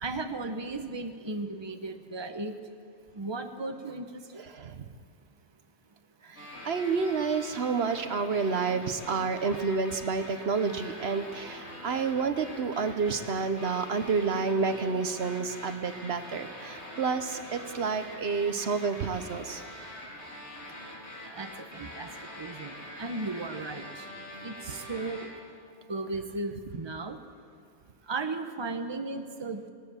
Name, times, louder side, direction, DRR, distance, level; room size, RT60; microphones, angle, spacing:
voice 1, 0.0-2.5 3.1-4.4 21.3-24.1 24.4-25.3 25.9-27.2 28.1-29.6, right 3 dB, 25° right, 7 dB, 1.0 m, -36 dB
voice 2, 4.4-4.9 6.2-19.6, right 5 dB, 65° right, 9 dB, 1.1 m, -29 dB
sound 1, 6.4-25.3, left 1 dB, 75° left, 3.7 m, -44 dB
19.5 x 19.0 x 7.1 m, 2.2 s
omnidirectional pair, 1.2 m